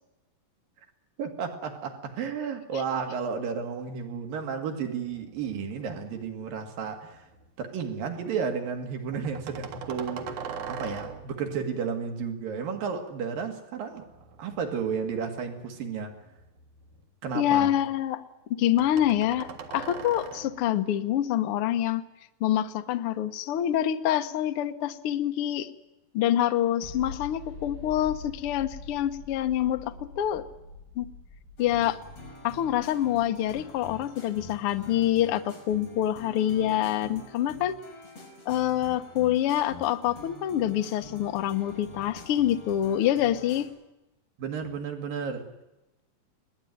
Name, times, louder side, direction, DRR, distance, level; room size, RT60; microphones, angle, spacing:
voice 1, 1.2-7.3 7.6-14.1 14.4-16.2 17.2-17.8 44.4-45.5, right 6 dB, 80° right, 4.0 m, -32 dB
sound 1, 5.1-6.4 6.8-7.5 9.1-11.5 14.0-15.5 16.1-17.3 18.8-20.7, right 6 dB, 60° right, 3.1 m, -42 dB
voice 2, 17.3-18.2 18.5-22.0 22.4-25.7 26.1-30.4 30.9-31.1 31.6-32.0 32.4-37.8 38.4-43.7, left 11 dB, 65° left, 1.4 m, -26 dB
sound 2, 26.8-34.3, left 3 dB, 25° left, 8.0 m, -45 dB
sound 3, 31.6-43.6, left 2 dB, 45° left, 6.4 m, -46 dB
22.0 x 19.5 x 9.4 m
omnidirectional pair, 4.0 m